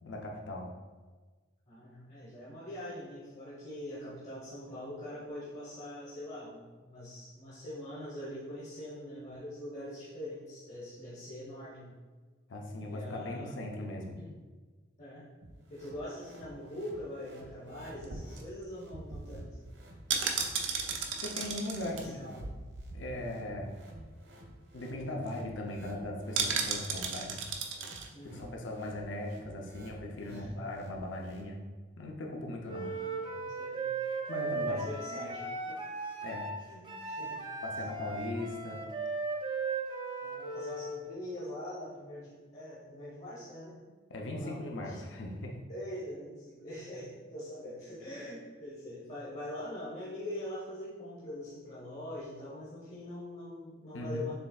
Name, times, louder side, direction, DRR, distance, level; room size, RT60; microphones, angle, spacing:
voice 1, 0.0-0.7 12.5-14.2 21.2-22.3 22.9-23.7 24.7-27.4 28.2-31.6 32.0-32.9 34.1-35.5 36.2-36.5 37.6-38.8 44.1-45.6 53.9-54.3, left 1 dB, 80° left, 0 dB, 0.6 m, -39 dB
voice 2, 1.7-12.0 12.9-13.5 14.2-14.3 15.0-15.2 15.7-19.6 21.9-22.5 23.2-23.5 28.1-28.7 30.3-30.6 32.8-33.9 34.5-35.8 36.7-37.4 37.8-37.9 40.2-43.8 44.3-45.0 45.7-54.3, left 1 dB, 35° left, -8 dB, 1.0 m, -43 dB
sound 1, 15.4-31.4, equal, 70° right, 1.0 m, -54 dB
sound 2, 18.0-23.3 23.6-23.7 23.9-24.2 24.6-24.7 24.9-25.3 26.4-28.1 28.4-28.5, right 5 dB, 90° right, 0.6 m, -35 dB
Wind instrument woodwind instrument, 32.7-41.0, right 3 dB, 25° right, 0.4 m, -37 dB
6.8 x 3.3 x 2.3 m, 1.4 s
head